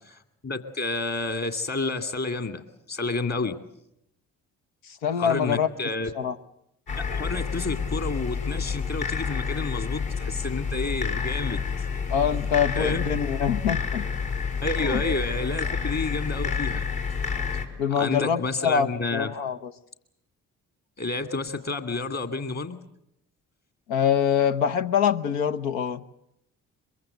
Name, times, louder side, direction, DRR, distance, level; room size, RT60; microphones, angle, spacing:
voice 1, 0.1-3.6 5.2-6.1 7.0-11.7 12.8-13.0 14.6-16.8 18.0-19.3 21.0-22.8, left 3 dB, 40° left, 8 dB, 2.4 m, -30 dB
voice 2, 5.0-5.7 6.2-6.3 12.1-14.0 14.8-15.0 17.8-19.7 23.9-26.0, left 8 dB, 80° left, 8 dB, 0.9 m, -24 dB
sound 1, 6.9-17.6, left 5 dB, 65° left, 4.0 m, -29 dB
23.0 x 22.5 x 7.9 m, 0.78 s
hypercardioid pair, 45°, 41 cm